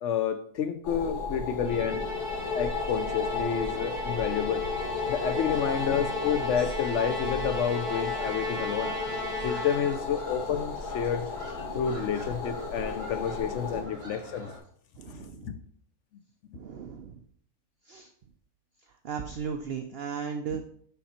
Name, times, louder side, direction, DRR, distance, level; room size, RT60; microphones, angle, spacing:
voice 1, 0.0-2.1 2.5-4.6 5.1-8.9 9.4-11.3 11.7-14.5 15.1-15.5, left 7 dB, 70° left, 0.7 m, -30 dB
sound 1, 0.8-13.8, left 4 dB, 85° left, 1.8 m, -35 dB
Musical instrument, 1.6-10.2, left 2 dB, 45° left, 2.1 m, -35 dB
sound 2, 7.4-14.6, equal, 40° right, 2.4 m, -46 dB
voice 2, 8.4-9.2 11.6-12.2 13.3-13.9 15.0-15.6 16.5-17.2 17.8-18.1 18.9-20.7, right 6 dB, 65° right, 0.6 m, -38 dB
7.2 x 5.3 x 4.2 m
omnidirectional pair, 1.6 m